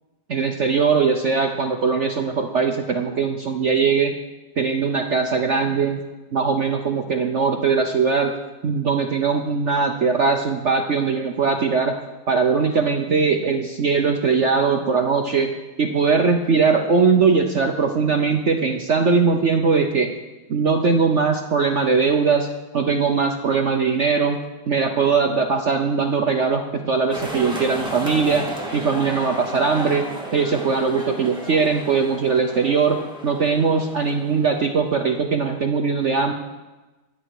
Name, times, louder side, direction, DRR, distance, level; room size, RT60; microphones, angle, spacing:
voice 1, 0.3-4.1 4.6-6.0 6.3-8.3 8.6-12.0 12.3-15.5 15.8-20.1 20.5-22.5 22.7-24.4 24.7-30.1 30.3-33.0 33.2-36.3, right 5 dB, 65° right, 5 dB, 0.7 m, -20 dB
sound 1, 27.1-35.2, equal, ahead, 2.3 m, -34 dB
23.0 x 8.9 x 4.8 m, 1.2 s
omnidirectional pair, 2.3 m